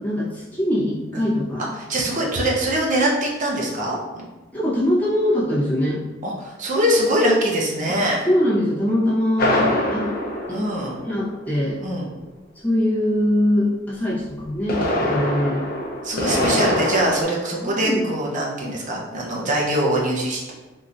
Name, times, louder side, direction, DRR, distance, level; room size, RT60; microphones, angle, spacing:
voice 1, 0.0-1.6 4.5-6.0 8.3-10.1 10.5-10.6 11.1-11.8 12.6-15.7 17.6-18.1, left 1 dB, 10° left, -9 dB, 1.0 m, -22 dB
voice 2, 1.8-4.2 6.2-8.2 10.5-11.0 11.8-12.1 16.0-20.5, right 1 dB, 40° right, -3 dB, 0.7 m, -23 dB
sound 1, 9.4-11.5 14.4-17.2, left 1 dB, 50° left, 0.6 m, -23 dB
3.6 x 2.8 x 2.5 m, 1.2 s
head